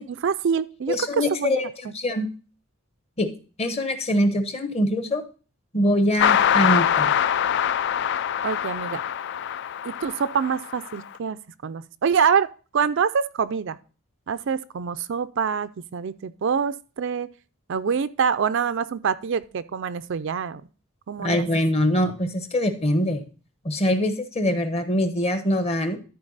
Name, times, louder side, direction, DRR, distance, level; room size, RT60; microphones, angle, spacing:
voice 1, 0.1-1.6 8.4-9.0 9.8-11.4 11.6-12.5 12.7-13.8 14.3-17.3 17.7-20.6 21.1-21.5, right 6 dB, 55° right, 13 dB, 0.4 m, -25 dB
voice 2, 0.9-1.7 1.9-2.3 3.2-3.3 3.6-5.2 5.7-7.1 21.2-23.2 23.6-26.0, left 1 dB, 30° left, 8 dB, 1.0 m, -23 dB
sound 1, 6.2-11.0, left 9 dB, 50° left, 0.3 m, -23 dB
13.0 x 4.6 x 3.9 m, 0.37 s
head